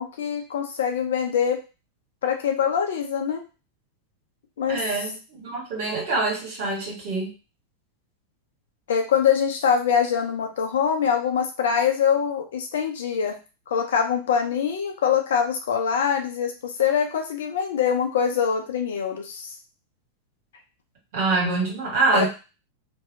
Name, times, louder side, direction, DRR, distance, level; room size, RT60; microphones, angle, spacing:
voice 1, 0.0-1.6 2.2-3.4 4.6-4.8 8.9-13.4 13.7-19.5 22.1-22.3, left 7 dB, 60° left, 4 dB, 0.6 m, -24 dB
voice 2, 4.7-7.3 21.1-22.3, right 3 dB, 50° right, -2 dB, 1.5 m, -25 dB
2.7 x 2.3 x 2.6 m, 0.31 s
figure-of-eight pair, 90°, 0 cm